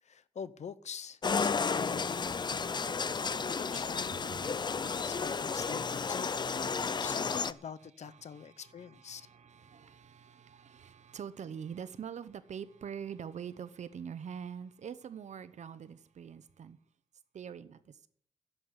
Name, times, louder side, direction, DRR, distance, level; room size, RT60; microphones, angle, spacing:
voice 1, 0.0-9.3, left 7 dB, 75° left, 0.8 m, -46 dB
sound 1, 1.2-7.5, left 5 dB, 40° left, 0.5 m, -32 dB
voice 2, 8.3-16.8 17.3-18.1, right 7 dB, 80° right, 0.9 m, -45 dB
11.0 x 8.0 x 9.9 m
wide cardioid pair, 95°, 12 cm